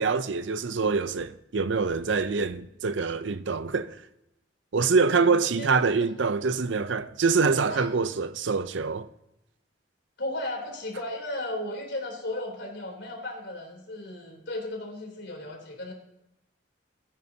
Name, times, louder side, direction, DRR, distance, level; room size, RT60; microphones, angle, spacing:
voice 1, 0.0-4.0 4.7-9.1, right 4 dB, 75° right, 0.6 m, -25 dB
voice 2, 5.1-5.8 7.7-7.9 10.2-15.9, left 1 dB, 70° left, 3.3 m, -35 dB
16.0 x 9.4 x 2.8 m
head